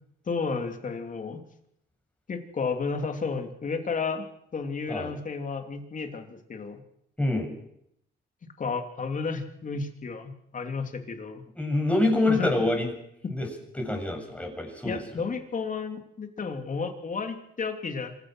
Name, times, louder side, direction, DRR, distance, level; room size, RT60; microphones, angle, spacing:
voice 1, 0.3-1.4 2.3-4.3 4.5-6.8 8.6-11.4 12.3-12.5 13.2-13.3 14.8-18.2, left 4 dB, 40° left, 6 dB, 3.1 m, -32 dB
voice 2, 7.2-7.5 11.6-12.9 13.3-13.5 13.7-15.0, left 2 dB, 5° left, 1 dB, 7.2 m, -26 dB
26.0 x 15.5 x 6.4 m, 0.75 s
cardioid pair, 90°, 20 cm